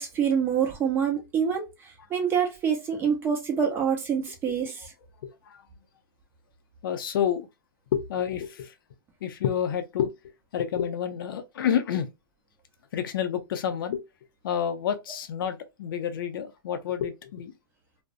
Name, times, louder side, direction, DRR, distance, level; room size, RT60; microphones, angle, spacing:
voice 1, 0.0-4.9, right 7 dB, 20° right, 0.7 m, -26 dB
voice 2, 5.2-5.6 6.8-7.5 7.9-8.7 9.2-10.1 10.5-12.1 12.9-14.0 14.4-17.5, left 9 dB, 65° left, 0.5 m, -29 dB
2.5 x 2.1 x 2.4 m
hypercardioid pair, 140°, 12 cm